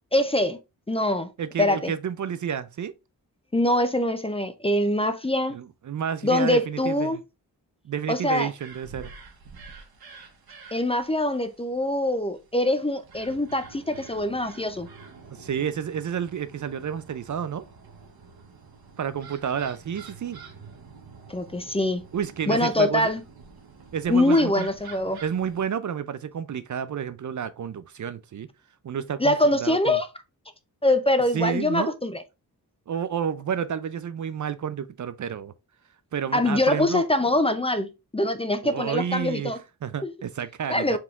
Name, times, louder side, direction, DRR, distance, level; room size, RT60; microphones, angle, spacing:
voice 1, 0.1-0.6 0.9-1.3 1.6-1.9 3.5-5.6 6.2-7.2 8.1-8.5 10.7-14.9 21.3-22.0 22.5-23.2 24.1-25.2 29.2-30.1 30.8-32.2 36.3-39.6 40.0-40.1 40.7-41.0, left 1 dB, 15° left, 0.5 m, -23 dB
voice 2, 1.4-3.0 5.5-7.2 7.8-9.1 15.3-17.7 19.0-20.4 22.1-23.1 23.9-24.7 25.2-28.5 28.8-30.0 31.3-31.9 32.9-35.5 36.1-37.0 38.6-41.0, right 8 dB, 50° right, 0.5 m, -30 dB
sound 1, 8.6-25.6, right 5 dB, 70° right, 1.1 m, -47 dB
4.8 x 3.6 x 2.4 m
cardioid pair, 70°, 38 cm